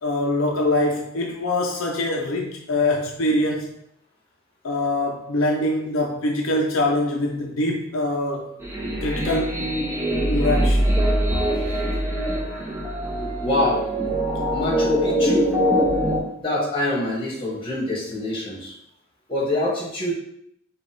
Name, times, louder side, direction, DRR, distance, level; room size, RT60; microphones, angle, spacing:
voice 1, 0.0-3.7 4.6-8.6 9.0-9.6 10.3-10.9, left 1 dB, 70° left, 0 dB, 0.5 m, -23 dB
sound 1, 8.6-16.2, equal, 10° right, 0.7 m, -23 dB
voice 2, 13.4-13.8 14.5-15.5 16.4-18.7 19.3-20.1, left 1 dB, 25° left, -4 dB, 1.4 m, -25 dB
5.0 x 2.3 x 3.8 m, 0.77 s
head